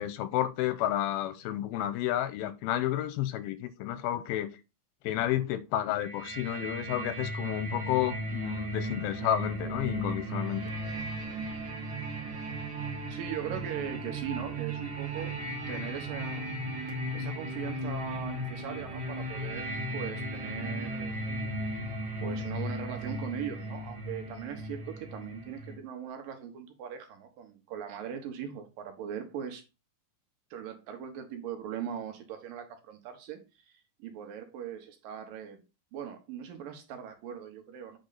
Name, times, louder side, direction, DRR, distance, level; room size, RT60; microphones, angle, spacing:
voice 1, 0.0-4.5 5.0-10.6, left 12 dB, 90° left, 2.5 m, -31 dB
sound 1, 6.0-25.7, right 1 dB, 40° right, 1.9 m, -36 dB
voice 2, 13.1-15.4 15.7-16.5 17.1-19.7 19.9-21.5 21.8-21.9 22.2-29.6 30.5-35.6 35.9-38.0, right 8 dB, 70° right, 2.7 m, -40 dB
7.9 x 4.3 x 4.0 m
omnidirectional pair, 4.3 m